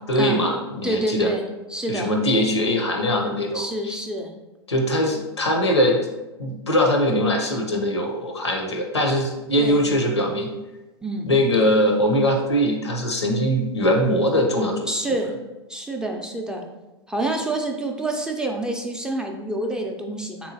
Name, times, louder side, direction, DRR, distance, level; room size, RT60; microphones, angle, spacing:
voice 1, 0.1-1.3 1.9-4.0 4.7-6.0 6.4-10.5 11.2-14.9, equal, 90° left, 3 dB, 0.6 m, -21 dB
voice 2, 0.8-1.4 1.7-2.1 3.5-4.3 9.6-9.8 11.0-11.3 14.9-15.3 15.7-16.6 17.1-20.5, right 2 dB, 5° right, 1 dB, 0.4 m, -27 dB
3.5 x 3.0 x 2.7 m, 1.1 s
figure-of-eight pair, 95°, 14 cm